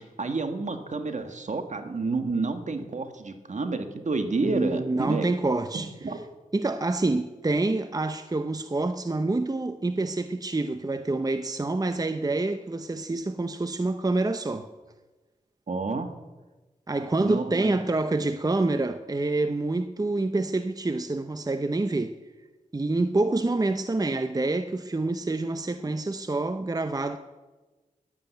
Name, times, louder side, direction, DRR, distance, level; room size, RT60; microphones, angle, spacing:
voice 1, 0.2-5.3 5.7-6.2 15.7-16.1 17.2-17.7, right 3 dB, 55° right, 1.6 m, -30 dB
voice 2, 4.4-5.9 6.5-14.7 16.9-22.2 22.7-27.2, right 2 dB, 25° right, 0.8 m, -27 dB
11.0 x 10.5 x 9.1 m
cardioid pair, 55°, 15 cm